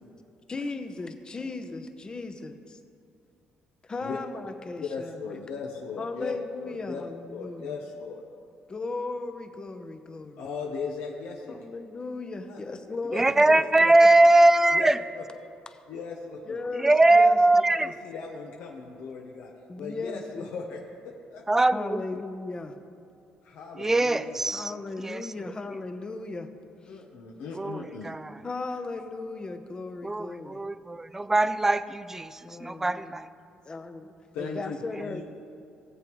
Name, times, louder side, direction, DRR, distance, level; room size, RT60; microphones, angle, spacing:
voice 1, 0.5-2.6 3.9-5.2 6.0-7.8 8.7-10.4 11.5-13.9 16.5-17.6 19.7-20.5 21.7-22.8 24.5-26.5 26.8-27.0 28.4-30.7 32.4-33.3 33.6-35.2, left 3 dB, 25° left, 8 dB, 0.7 m, -36 dB
voice 2, 4.8-6.4 6.6-7.0 7.3-8.2 10.4-11.7 12.5-12.6 13.1-13.9 14.7-14.9 15.2-15.3 15.9-16.6 17.8-19.5 19.8-21.4 23.4-24.4 26.9-28.1 34.3-35.2, left 5 dB, 85° left, -1 dB, 0.9 m, -38 dB
voice 3, 13.1-15.0 16.8-17.9 21.5-22.0 23.8-24.7 25.0-25.2 27.5-28.3 30.0-33.3, right 2 dB, 10° right, 13 dB, 0.3 m, -21 dB
18.0 x 7.7 x 3.1 m, 2.5 s
cardioid pair, 105°, 3 cm